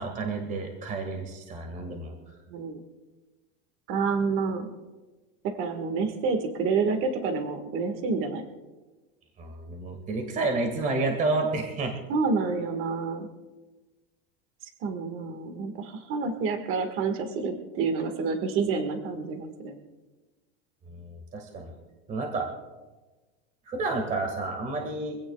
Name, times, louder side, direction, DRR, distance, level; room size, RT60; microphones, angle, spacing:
voice 1, 0.0-2.1 9.4-11.9 20.9-21.7 22.1-22.5 23.7-25.2, right 3 dB, 25° right, 3 dB, 1.8 m, -30 dB
voice 2, 2.5-2.8 3.9-4.7 5.6-8.4 12.1-13.3 14.6-19.8, right 4 dB, 40° right, 6 dB, 1.7 m, -28 dB
24.5 x 16.5 x 2.3 m, 1.2 s
supercardioid pair, 165°, 33 cm